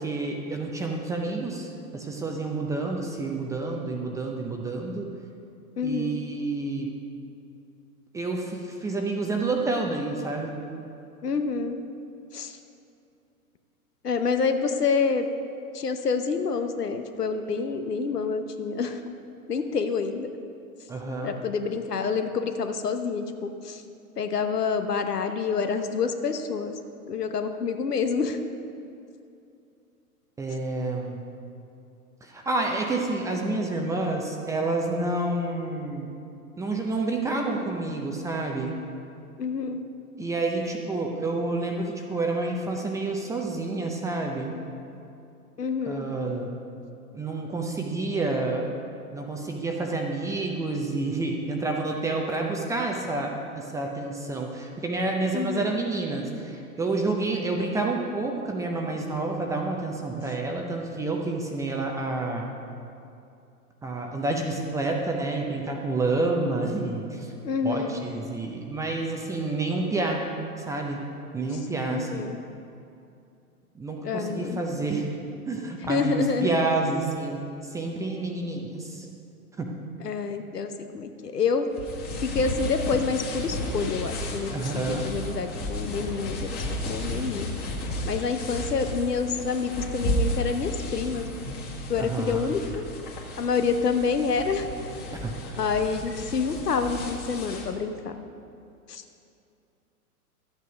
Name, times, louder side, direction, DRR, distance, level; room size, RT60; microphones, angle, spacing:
voice 1, 0.0-5.1 5.8-6.9 8.1-10.6 20.9-21.3 30.4-31.2 32.2-36.1 36.6-38.7 40.2-44.5 45.9-46.5 47.1-48.6 49.1-62.5 63.8-67.3 67.6-70.2 70.6-71.0 71.3-72.3 73.8-75.1 75.5-77.4 77.7-79.1 79.6-79.7 84.5-85.1 92.0-92.5 95.2-95.5, right 2 dB, 5° right, 1 dB, 0.5 m, -29 dB
voice 2, 5.8-6.2 11.2-11.8 12.3-12.6 14.0-15.3 15.7-19.0 19.5-20.3 21.2-23.8 24.2-26.7 27.1-28.4 39.4-39.8 45.6-46.1 55.3-55.7 67.4-68.0 71.9-72.4 74.0-74.6 75.8-76.5 80.0-81.7 82.2-87.5 88.0-91.3 91.9-92.8 93.4-94.7 95.6-98.2 98.9-99.0, left 5 dB, 85° left, 7 dB, 1.1 m, -27 dB
sound 1, 81.7-97.7, equal, 20° left, 1.7 m, -33 dB
12.5 x 8.5 x 5.1 m, 2.6 s
hypercardioid pair, 115°, 46 cm